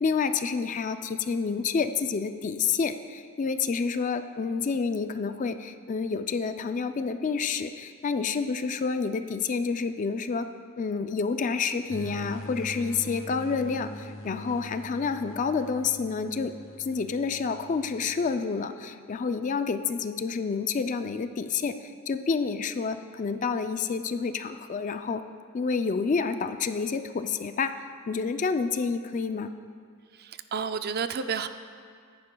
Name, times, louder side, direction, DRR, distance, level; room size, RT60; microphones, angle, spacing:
voice 1, 0.0-10.5 10.8-16.5 16.8-25.2 25.5-27.7 28.1-29.5, left 5 dB, 35° left, 9 dB, 0.3 m, -29 dB
sound 1, 11.9-18.5, left 1 dB, 70° left, 1.0 m, -42 dB
voice 2, 30.2-31.5, right 6 dB, 45° right, 10 dB, 0.4 m, -31 dB
14.5 x 10.5 x 2.3 m, 2.1 s
head